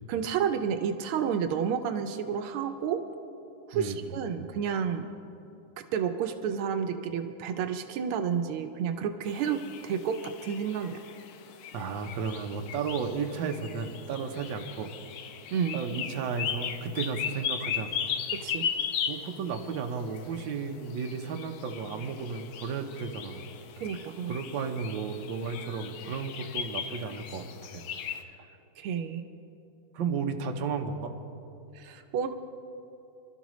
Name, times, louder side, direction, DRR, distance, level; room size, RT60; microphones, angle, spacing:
voice 1, 0.1-3.0 3.7-5.1 5.9-11.0 15.5-15.8 18.3-18.7 23.8-24.3 28.8-29.2 31.7-32.3, right 7 dB, 90° right, 7 dB, 1.6 m, -30 dB
sound 1, 9.3-28.2, left 8 dB, 75° left, 1.5 m, -38 dB
voice 2, 11.7-14.9 15.7-17.9 19.1-23.5 24.3-27.8 28.1-28.5 29.9-31.1, right 5 dB, 65° right, 4 dB, 1.5 m, -34 dB
25.5 x 12.5 x 3.1 m, 2.8 s
omnidirectional pair, 2.3 m